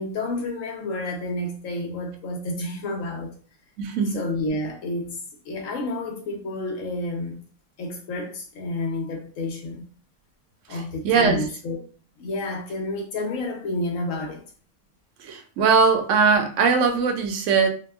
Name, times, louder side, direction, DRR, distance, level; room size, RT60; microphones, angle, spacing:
voice 1, 0.0-3.3 4.1-5.2 5.4-7.4 7.8-9.9 10.7-11.8 12.2-14.4, left 2 dB, 65° left, 1.1 m, -30 dB
voice 2, 3.8-4.2 10.7-11.4 15.2-17.7, right 5 dB, 65° right, 0.8 m, -20 dB
2.8 x 2.1 x 3.4 m
omnidirectional pair, 1.5 m